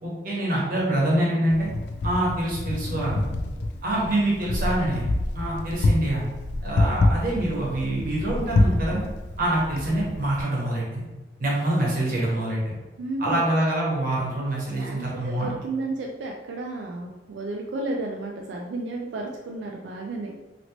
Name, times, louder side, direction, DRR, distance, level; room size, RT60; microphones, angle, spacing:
voice 1, 0.0-1.7 2.0-3.2 3.8-5.1 5.3-6.3 6.6-9.0 9.4-11.0 11.4-12.8 13.2-15.5, right 1 dB, 50° right, -6 dB, 1.1 m, -25 dB
Wind, 1.5-10.4, left 2 dB, 70° left, 0.3 m, -26 dB
voice 2, 13.0-13.4 14.7-20.4, right 2 dB, 90° right, 0 dB, 0.4 m, -32 dB
2.9 x 2.8 x 2.9 m, 1.2 s
head